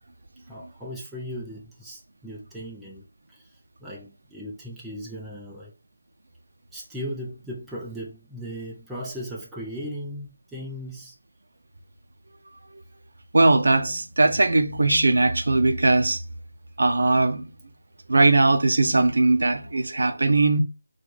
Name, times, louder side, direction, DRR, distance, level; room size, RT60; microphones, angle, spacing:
voice 1, 0.5-3.4 3.8-5.7 6.7-11.1, equal, 5° right, 0.5 m, -37 dB
voice 2, 13.3-16.2 16.8-17.5 18.1-20.6, right 2 dB, 70° right, 0.5 m, -20 dB
4.5 x 2.3 x 2.3 m
figure-of-eight pair, 165°, 0 cm